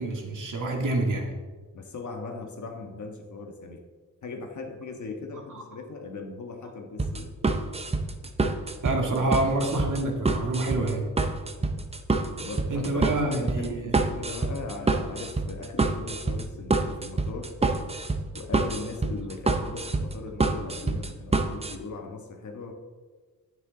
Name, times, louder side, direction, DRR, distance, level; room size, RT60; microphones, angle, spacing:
voice 1, 0.0-1.3 5.5-5.6 8.8-11.1 12.7-13.9, right 2 dB, 65° right, 1 dB, 2.0 m, -27 dB
voice 2, 1.7-3.8 4.2-7.3 11.6-11.8 12.4-17.5 18.3-22.7, left 4 dB, 60° left, 3 dB, 1.4 m, -39 dB
sound 1, 7.0-21.7, right 3 dB, 20° right, 0.6 m, -27 dB
11.0 x 9.5 x 3.9 m, 1.4 s
wide cardioid pair, 170°, 33 cm